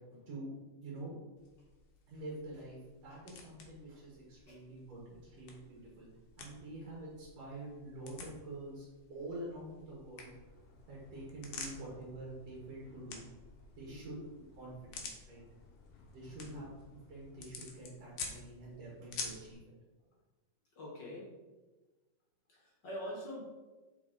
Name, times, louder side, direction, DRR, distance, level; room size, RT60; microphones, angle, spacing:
voice 1, 0.8-1.2 2.1-6.1 6.4-10.3 10.9-13.2 13.8-14.2 14.6-15.4 16.1-16.7 17.1-19.6, right 2 dB, 60° right, -5 dB, 2.4 m, -47 dB
sound 1, 1.4-19.5, left 4 dB, 70° left, 1.9 m, -51 dB
sound 2, 10.3-17.5, left 1 dB, 85° left, 2.4 m, -61 dB
voice 2, 13.8-14.2 16.4-16.7 20.7-21.3 22.5-23.4, equal, 50° left, -4 dB, 1.5 m, -45 dB
6.9 x 4.1 x 3.8 m, 1.2 s
omnidirectional pair, 3.3 m